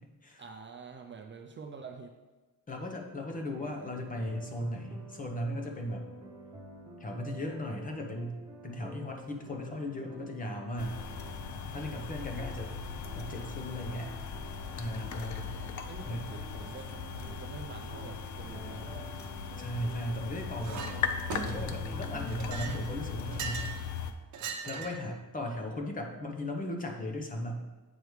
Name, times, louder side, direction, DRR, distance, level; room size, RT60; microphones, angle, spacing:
voice 1, 0.4-2.1 15.2-19.1 24.5-24.6, right 5 dB, 35° right, 3 dB, 0.4 m, -47 dB
voice 2, 2.7-6.1 7.0-11.0 11.7-12.7 13.2-14.1 14.7-15.6 16.0-16.3 19.6-21.0 21.4-23.7 24.7-27.6, left 1 dB, 25° left, 2 dB, 0.9 m, -37 dB
sound 1, 3.3-22.6, right 1 dB, 10° right, 0.9 m, -49 dB
sound 2, 10.8-24.1, left 6 dB, 55° left, 0.6 m, -38 dB
Chink clink, 20.6-20.9 21.3-21.8 22.3-23.8 24.3-25.1, right 5 dB, 55° right, 1.0 m, -39 dB
8.0 x 4.8 x 4.8 m, 1.2 s
wide cardioid pair, 180°, 35 cm